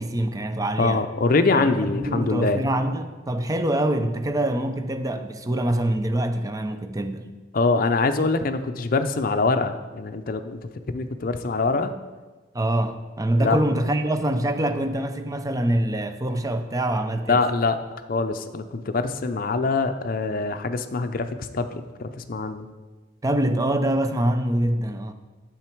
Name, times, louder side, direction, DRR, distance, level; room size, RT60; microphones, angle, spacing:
voice 1, 0.0-1.0 1.5-7.3 12.5-17.4 23.2-25.1, right 1 dB, 20° right, 8 dB, 0.5 m, -25 dB
voice 2, 0.8-2.6 7.5-11.9 13.4-13.6 17.3-17.8 18.1-22.7, left 3 dB, 50° left, 8 dB, 0.5 m, -24 dB
9.1 x 7.0 x 4.5 m, 1.3 s
head